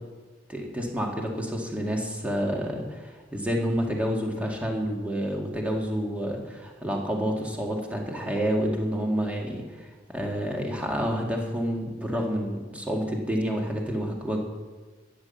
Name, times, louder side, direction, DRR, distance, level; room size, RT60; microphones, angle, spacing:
voice 1, 0.5-14.4, equal, 5° right, 0 dB, 2.1 m, -29 dB
13.0 x 9.6 x 7.1 m, 1.4 s
head